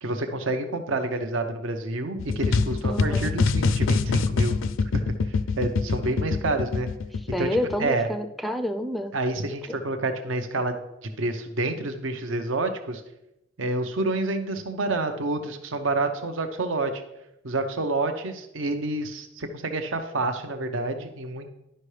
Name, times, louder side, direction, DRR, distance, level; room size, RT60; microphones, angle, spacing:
voice 1, 0.0-4.6 4.9-6.9 7.4-7.5 7.8-8.1 9.1-10.8 11.2-13.0 13.6-17.0 17.4-21.5, right 2 dB, 70° right, 7 dB, 0.8 m, -28 dB
sound 1, 2.2-7.9, left 4 dB, 70° left, 0.4 m, -24 dB
voice 2, 2.9-3.3 7.3-9.2 9.7-9.8, equal, ahead, 8 dB, 0.4 m, -28 dB
11.5 x 5.4 x 3.3 m, 0.89 s
head